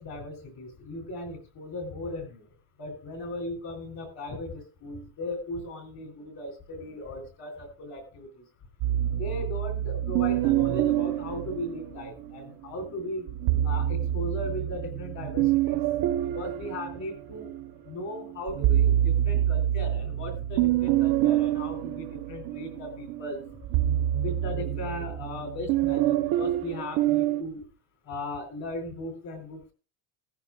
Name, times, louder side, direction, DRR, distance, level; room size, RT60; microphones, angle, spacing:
voice 1, 0.0-2.5 2.8-8.4 9.1-13.3 13.6-15.8 16.2-17.5 17.9-23.4 24.2-27.7 28.0-29.7, left 1 dB, 35° left, 6 dB, 4.0 m, -37 dB
sound 1, 8.8-12.3 13.3-17.7 18.1-27.4, right 12 dB, 50° right, 1.1 m, -26 dB
16.5 x 14.0 x 2.4 m, 0.34 s
cardioid pair, 175°, 48 cm